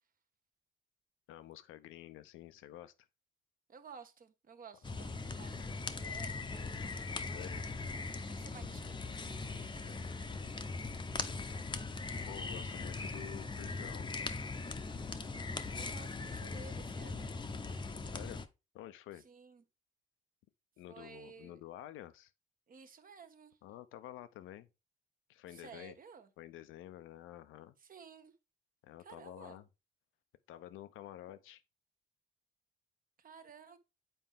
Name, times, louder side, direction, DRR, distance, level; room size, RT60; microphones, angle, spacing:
voice 1, 1.3-2.9 7.3-7.6 12.3-14.1 16.4-16.6 18.1-18.4 18.7-19.2 20.8-22.3 23.6-24.7 25.3-26.0 26.4-27.8 28.8-29.7 30.5-31.6, left 13 dB, 90° left, 0.6 m, -50 dB
voice 2, 3.7-6.9 7.5-10.8 11.1-11.9 15.3-17.3 19.1-19.6 20.9-21.6 22.7-23.6 25.5-26.3 27.8-28.3 29.0-29.6 33.2-33.8, right 6 dB, 45° right, 1.0 m, -55 dB
sound 1, 4.8-18.5, left 3 dB, 25° left, 0.7 m, -40 dB
7.9 x 4.5 x 3.6 m
cardioid pair, 90°, 20 cm